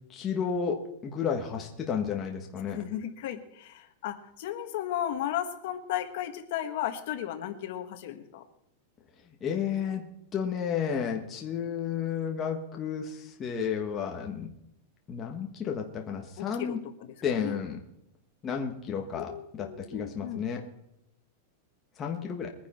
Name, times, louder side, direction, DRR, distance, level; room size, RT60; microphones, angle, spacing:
voice 1, 0.1-2.8 9.4-10.1 10.3-14.5 15.1-16.8 17.2-17.8 18.4-20.6 22.0-22.5, left 7 dB, 20° left, 1 dB, 1.4 m, -32 dB
voice 2, 2.7-8.4 16.4-17.6 19.1-20.4, left 11 dB, 50° left, 6 dB, 1.6 m, -35 dB
22.0 x 10.5 x 4.4 m, 0.79 s
supercardioid pair, 170°, 0 cm